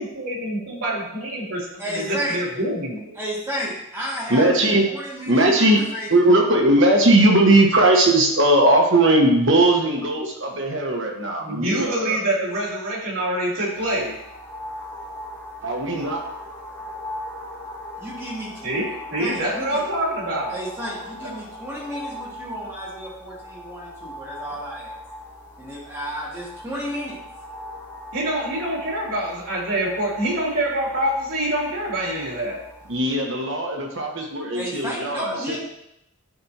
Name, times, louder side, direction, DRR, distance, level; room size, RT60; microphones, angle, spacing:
voice 1, 0.0-3.1 11.4-14.1 15.8-15.9 18.6-20.6 21.2-21.3 28.1-32.6, right 1 dB, 75° right, -4 dB, 3.1 m, -26 dB
voice 2, 1.8-2.4 3.1-6.1 18.0-18.7 19.2-19.8 20.5-24.9 25.6-27.2 34.5-35.6, equal, 10° right, -7 dB, 2.2 m, -32 dB
voice 3, 4.3-4.9 5.3-5.8 6.1-12.2 15.6-16.2 32.9-35.6, right 1 dB, 60° right, 0 dB, 1.2 m, -18 dB
sound 1, 13.7-33.0, left 1 dB, 15° left, 1.5 m, -39 dB
11.5 x 4.4 x 2.9 m, 0.80 s
head